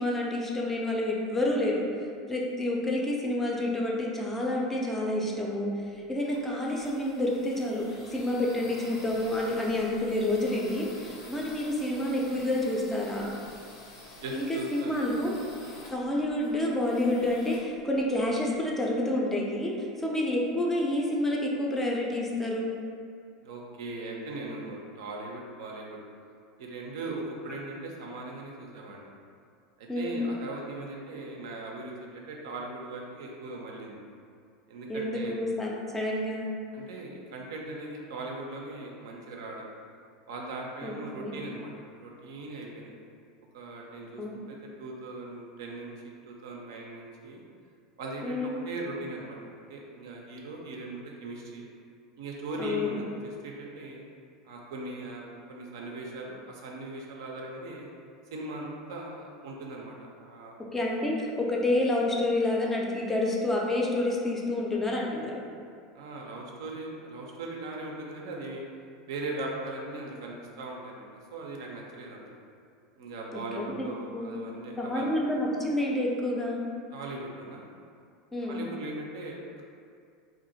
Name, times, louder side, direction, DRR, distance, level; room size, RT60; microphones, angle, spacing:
voice 1, 0.0-1.8 2.3-13.3 14.3-15.3 15.9-22.7 29.9-30.2 34.9-36.5 40.8-41.4 44.2-44.5 48.2-48.6 52.6-52.9 60.7-65.4 73.6-73.9 74.1-74.3 74.8-76.6 78.3-78.6, left 1 dB, 10° left, -2 dB, 0.4 m, -29 dB
sound 1, 5.8-18.5, left 2 dB, 65° left, 0.6 m, -49 dB
voice 2, 14.2-15.0 23.4-26.0 26.6-29.1 29.8-34.0 34.7-35.4 36.7-39.7 40.3-41.7 42.0-42.9 43.5-47.4 48.0-51.6 52.2-53.1 53.4-54.0 54.4-57.9 58.3-60.5 65.9-68.6 69.1-71.1 71.3-72.4 73.0-75.1 76.9-77.6 78.4-79.6, right 2 dB, 60° right, -1 dB, 0.4 m, -39 dB
2.6 x 2.4 x 2.6 m, 2.3 s
figure-of-eight pair, 80°, 2 cm